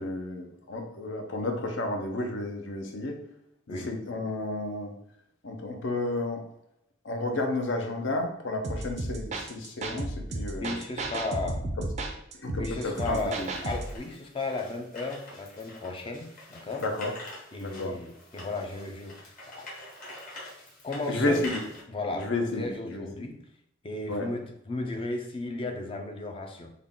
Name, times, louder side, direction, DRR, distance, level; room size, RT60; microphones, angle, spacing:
voice 1, 0.0-3.2 3.7-4.9 5.4-6.4 7.0-10.8 12.4-13.5 16.8-17.1 17.6-18.0 21.1-21.6 22.1-23.3 24.1-24.4, left 2 dB, 65° left, 3 dB, 0.6 m, -31 dB
sound 1, 8.6-14.0, right 2 dB, 35° right, 0.4 m, -34 dB
voice 2, 10.6-11.6 12.6-16.9 17.5-19.3 19.6-19.7 20.8-21.4 21.9-22.3 22.6-23.4 23.8-26.7, left 2 dB, 30° left, 3 dB, 0.4 m, -35 dB
sound 2, 12.9-21.8, left 1 dB, 45° left, 1.2 m, -46 dB
3.6 x 2.2 x 3.6 m, 0.77 s
head